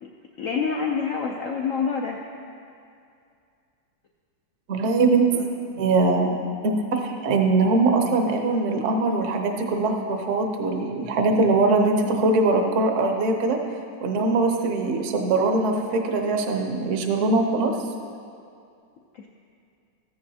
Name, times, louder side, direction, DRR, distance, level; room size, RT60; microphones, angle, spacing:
voice 1, 0.4-2.2 5.3-5.4 19.1-19.3, left 5 dB, 80° left, 0 dB, 0.7 m, -27 dB
voice 2, 4.7-5.3 5.8-6.4 6.6-13.6 14.0-17.7, right 3 dB, 55° right, 3 dB, 0.9 m, -22 dB
14.0 x 9.5 x 2.8 m, 2.4 s
omnidirectional pair, 2.1 m